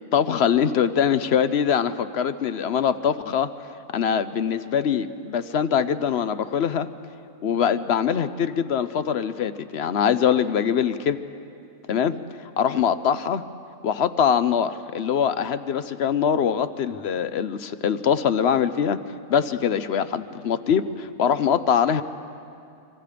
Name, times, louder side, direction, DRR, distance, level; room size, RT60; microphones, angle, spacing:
voice 1, 0.0-3.5 3.9-6.9 7.4-11.2 11.9-12.2 12.6-13.4 13.8-19.0 19.3-22.0, left 8 dB, 60° left, 12 dB, 0.8 m, -23 dB
26.0 x 24.5 x 5.1 m, 2.5 s
omnidirectional pair, 1.4 m